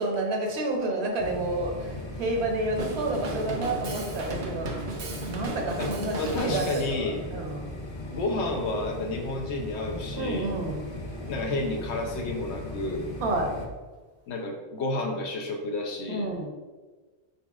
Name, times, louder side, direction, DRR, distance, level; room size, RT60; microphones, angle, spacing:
voice 1, 0.0-4.9 5.3-7.7 10.2-10.8 13.2-13.5 16.1-16.5, right 2 dB, 70° right, 1 dB, 1.0 m, -30 dB
sound 1, 1.2-13.7, left 1 dB, 45° left, 0.3 m, -38 dB
Drum kit, 2.8-7.0, right 2 dB, 55° right, 0.6 m, -35 dB
voice 2, 5.8-7.2 8.1-10.5 11.3-13.1 14.3-16.3, left 2 dB, 80° left, 2 dB, 0.9 m, -31 dB
4.3 x 4.0 x 2.3 m, 1.3 s
omnidirectional pair, 1.1 m